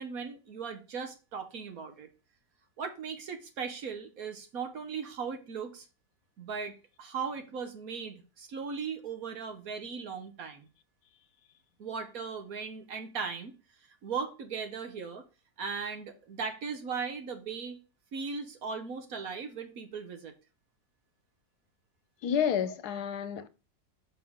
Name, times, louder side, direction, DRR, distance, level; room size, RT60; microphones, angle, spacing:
voice 1, 0.0-2.1 2.8-5.9 6.4-10.7 11.8-13.5 14.0-15.2 15.6-17.8 18.1-20.3, right 5 dB, 65° right, 1.4 m, -38 dB
voice 2, 22.2-23.5, left 8 dB, 80° left, 1.3 m, -30 dB
6.2 x 5.5 x 3.7 m
omnidirectional pair, 1.7 m